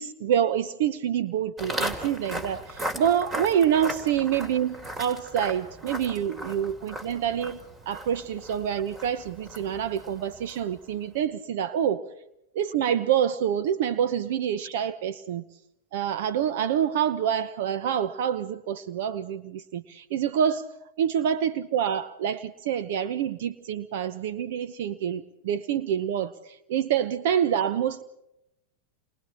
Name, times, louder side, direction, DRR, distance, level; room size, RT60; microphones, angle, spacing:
voice 1, 0.0-7.6 7.9-12.0 12.5-15.4 15.9-20.7 21.0-28.0, right 9 dB, 70° right, 14 dB, 1.0 m, -27 dB
Walk footsteps, 1.6-10.8, right 1 dB, 20° right, 3.6 m, -37 dB
29.5 x 22.5 x 4.4 m, 0.82 s
hypercardioid pair, 105°, 0 cm